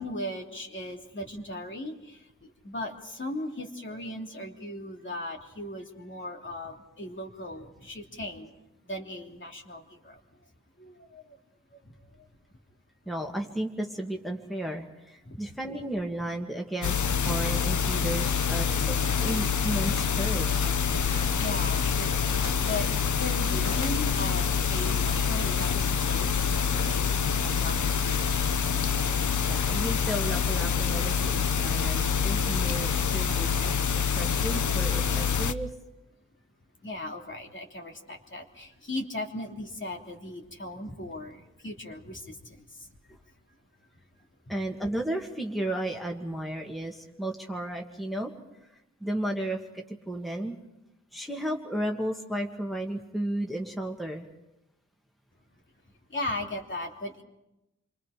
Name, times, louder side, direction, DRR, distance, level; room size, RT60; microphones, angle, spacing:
voice 1, 0.0-2.2 2.6-8.5 8.9-10.2 10.8-11.2 21.4-22.3 22.6-22.8 23.1-27.1 27.4-27.9 36.8-41.4 41.6-42.6 56.1-57.2, left 1 dB, 40° left, 1 dB, 3.1 m, -37 dB
voice 2, 13.1-20.7 29.5-33.5 34.2-35.7 44.5-48.3 49.0-50.6 51.1-54.3, right 1 dB, ahead, 1 dB, 2.1 m, -33 dB
sound 1, 16.8-35.5, left 6 dB, 90° left, 0.9 m, -26 dB
sound 2, 18.9-30.2, left 3 dB, 70° left, 1.9 m, -43 dB
29.0 x 24.5 x 5.1 m, 0.92 s
wide cardioid pair, 110°, 29 cm